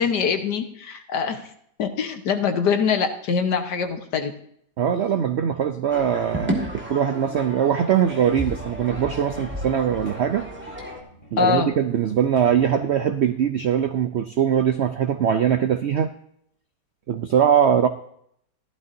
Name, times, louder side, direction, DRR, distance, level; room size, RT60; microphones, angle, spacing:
voice 1, 0.0-1.4 1.8-4.3 11.4-11.7, left 6 dB, 75° left, 7 dB, 1.7 m, -23 dB
voice 2, 4.8-10.8 11.3-16.1 17.1-17.9, right 8 dB, 85° right, 9 dB, 0.6 m, -22 dB
sound 1, 5.9-11.0, equal, 5° right, 1.6 m, -32 dB
sound 2, 8.3-15.1 15.7-15.8, equal, 25° left, 5.5 m, -47 dB
14.5 x 12.0 x 2.6 m, 0.68 s
omnidirectional pair, 1.8 m